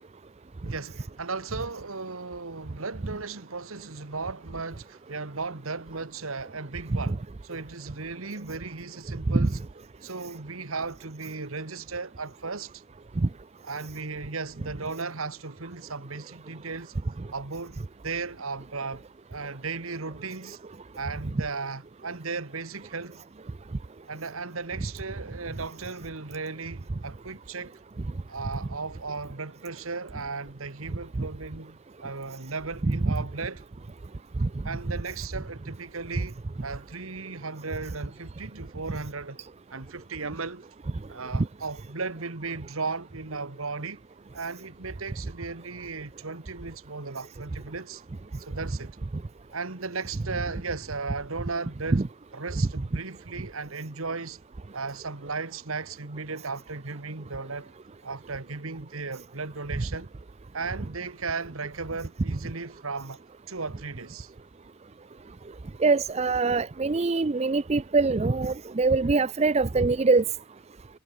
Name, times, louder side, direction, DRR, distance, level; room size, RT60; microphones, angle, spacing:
voice 1, 0.6-9.6 10.0-12.8 13.6-17.0 17.3-19.0 19.3-20.6 21.0-23.2 24.1-27.8 28.3-33.6 34.6-39.4 39.7-40.7 41.1-44.0 44.3-48.0 48.4-49.0 49.5-52.0 52.3-54.4 54.7-57.7 58.0-60.1 60.5-64.3, right 4 dB, 80° right, 1.8 m, -36 dB
voice 2, 32.8-33.1 34.4-34.5 41.3-41.5 51.9-52.0 59.8-59.9 65.8-70.2, right 3 dB, 30° right, 0.5 m, -23 dB
head